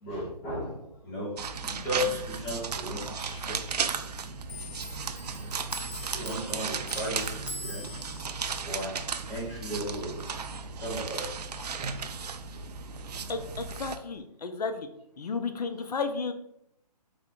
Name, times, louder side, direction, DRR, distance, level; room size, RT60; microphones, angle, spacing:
voice 1, 0.0-1.3 1.6-3.7 6.1-8.0 8.7-9.0 9.3-10.2 10.7-11.3, equal, 5° left, -6 dB, 0.3 m, -35 dB
sound 1, 1.4-14.0, right 5 dB, 75° right, 0.4 m, -35 dB
Clock, 4.5-11.5 11.8-13.1 13.4-14.2, left 2 dB, 35° left, 1.0 m, -45 dB
voice 2, 13.3-14.9 15.2-16.3, left 4 dB, 70° left, 7 dB, 0.6 m, -33 dB
3.5 x 2.2 x 3.7 m, 0.73 s
figure-of-eight pair, 145°, 21 cm